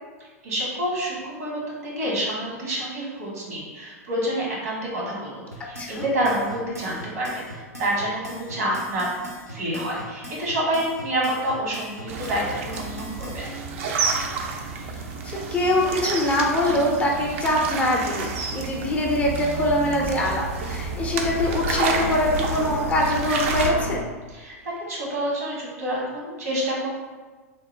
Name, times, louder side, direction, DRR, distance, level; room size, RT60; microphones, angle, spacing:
voice 1, 0.4-9.1 9.5-13.5 24.3-26.9, right 1 dB, 70° right, -5 dB, 1.1 m, -28 dB
sound 1, 5.5-13.4, equal, 90° right, 0.6 m, -40 dB
sound 2, 12.1-23.7, right 4 dB, 50° right, 0.4 m, -30 dB
Aircraft, 14.5-24.0, left 2 dB, 85° left, 0.4 m, -34 dB
voice 2, 15.2-18.3 18.5-24.0, left 1 dB, 15° left, -1 dB, 0.4 m, -23 dB
2.9 x 2.0 x 3.1 m, 1.3 s
figure-of-eight pair, 95°, 8 cm